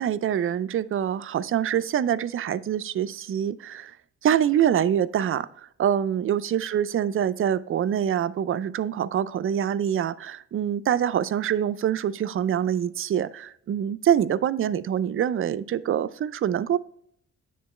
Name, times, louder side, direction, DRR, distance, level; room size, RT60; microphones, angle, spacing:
voice 1, 0.0-3.9 4.2-5.5 5.8-16.8, right 9 dB, 45° right, 14 dB, 0.5 m, -25 dB
9.4 x 3.8 x 4.2 m, 0.66 s
cardioid pair, 90°, 30 cm